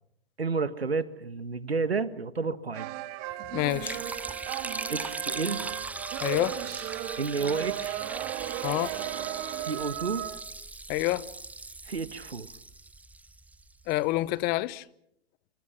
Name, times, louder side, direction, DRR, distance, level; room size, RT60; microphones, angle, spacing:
voice 1, 0.4-2.9 4.9-5.6 7.2-8.1 9.6-10.2 11.9-12.5, right 4 dB, 90° right, 1.7 m, -31 dB
sound 1, 2.7-10.4, right 14 dB, 40° right, 2.1 m, -36 dB
voice 2, 3.5-4.0 6.2-6.6 8.6-8.9 10.9-11.2 13.9-14.8, left 18 dB, 30° left, 0.9 m, -27 dB
Liquid, 3.7-13.9, right 3 dB, 5° right, 0.9 m, -39 dB
27.5 x 25.0 x 6.0 m
figure-of-eight pair, 110°, 30 cm